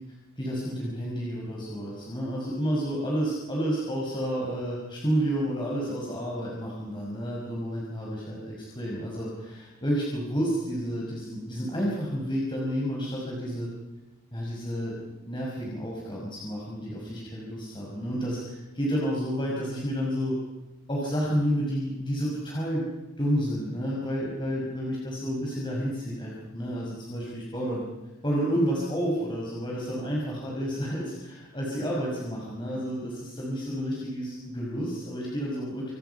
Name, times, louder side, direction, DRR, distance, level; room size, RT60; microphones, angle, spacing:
voice 1, 0.4-13.7 14.3-15.0 15.3-20.4 20.9-22.9 23.2-27.8 28.2-35.9, equal, 20° left, -3 dB, 5.7 m, -30 dB
28.5 x 28.0 x 5.8 m, 1.1 s
head